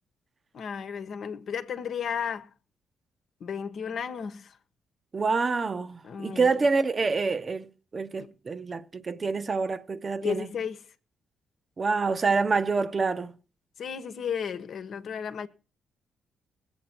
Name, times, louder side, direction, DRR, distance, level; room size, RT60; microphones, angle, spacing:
voice 1, 0.5-2.5 3.4-4.5 6.0-6.6 10.2-10.8 13.8-15.5, left 7 dB, 65° left, 1.1 m, -33 dB
voice 2, 5.1-7.7 7.9-10.5 11.8-13.3, right 4 dB, 40° right, 0.8 m, -27 dB
19.5 x 8.0 x 4.5 m
cardioid pair, 70°, 0 cm